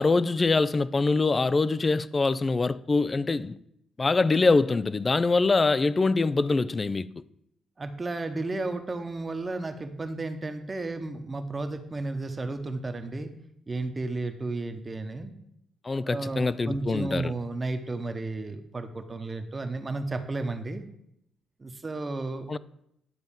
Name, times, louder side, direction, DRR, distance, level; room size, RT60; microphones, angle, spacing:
voice 1, 0.0-3.5 4.0-7.1 15.8-17.3 22.5-22.6, left 3 dB, 30° left, 0.4 m, -24 dB
voice 2, 7.8-13.3 13.7-15.3 16.0-20.8 21.6-22.5, right 2 dB, 30° right, 1.0 m, -33 dB
10.5 x 3.9 x 7.3 m
cardioid pair, 85°, 0 cm